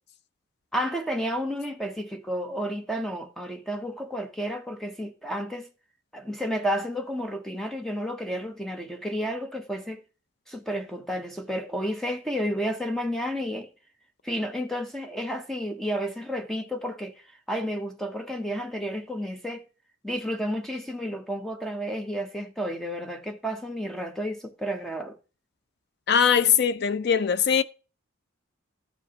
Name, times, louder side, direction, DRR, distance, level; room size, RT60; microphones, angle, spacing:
voice 1, 0.7-5.7 6.1-10.0 10.5-13.7 14.2-19.7 20.0-25.2, equal, ahead, 0.6 m, -31 dB
voice 2, 26.1-27.6, left 7 dB, 50° left, 0.4 m, -21 dB
13.5 x 5.0 x 2.8 m
head